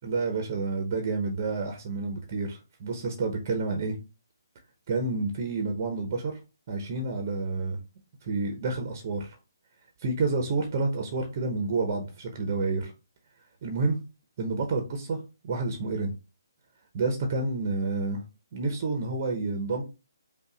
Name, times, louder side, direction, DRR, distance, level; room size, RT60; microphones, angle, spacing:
voice 1, 0.0-3.9 4.9-6.3 6.7-7.8 8.2-9.4 10.0-12.9 13.6-14.0 14.4-16.1 16.9-18.2 18.5-19.8, right 3 dB, 40° right, 4 dB, 1.0 m, -29 dB
5.3 x 2.6 x 3.9 m, 0.29 s
figure-of-eight pair, 140°, 2 cm